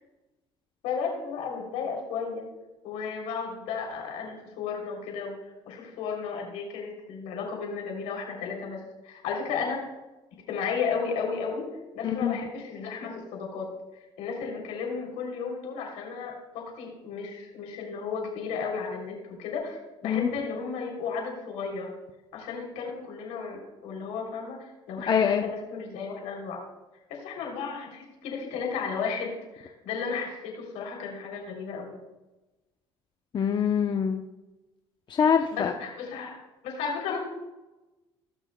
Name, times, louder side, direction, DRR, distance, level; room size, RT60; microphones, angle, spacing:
voice 1, 0.8-2.4 2.8-9.8 10.5-11.6 11.9-13.7 14.2-19.1 19.4-21.9 22.3-26.6 27.1-31.9 35.5-37.2, left 5 dB, 80° left, 0 dB, 3.0 m, -34 dB
voice 2, 12.0-12.4 20.0-20.3 25.1-25.5 33.3-34.2 35.1-35.7, left 7 dB, 40° left, 5 dB, 0.7 m, -24 dB
18.5 x 6.2 x 2.2 m, 1.1 s
supercardioid pair, 80°, 12 cm